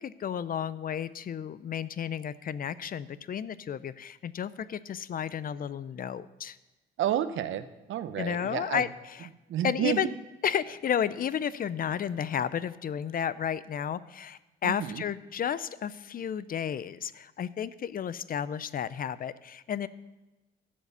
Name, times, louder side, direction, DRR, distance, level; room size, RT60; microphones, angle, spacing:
voice 1, 0.0-6.6 8.2-9.2 9.6-10.1 10.4-19.9, left 8 dB, 45° left, 17 dB, 0.5 m, -32 dB
voice 2, 7.0-8.8 9.5-10.1 14.6-15.0, right 11 dB, 75° right, 12 dB, 0.8 m, -30 dB
12.0 x 7.5 x 6.8 m, 1.1 s
cardioid pair, 90°, 20 cm